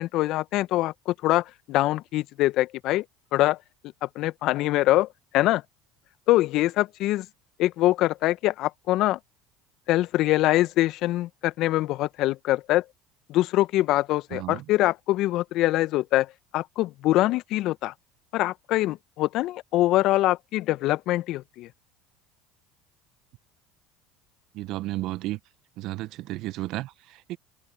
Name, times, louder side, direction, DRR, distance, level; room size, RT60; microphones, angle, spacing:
voice 1, 0.0-3.0 3.3-3.6 4.0-5.1 5.3-5.6 6.3-7.3 7.6-9.2 9.9-12.8 13.3-17.9 18.3-21.7, left 16 dB, 60° left, 1.3 m, -24 dB
voice 2, 14.3-14.6 24.5-25.4 25.8-27.4, right 17 dB, 60° right, 1.3 m, -33 dB
hypercardioid pair, 75°, 0 cm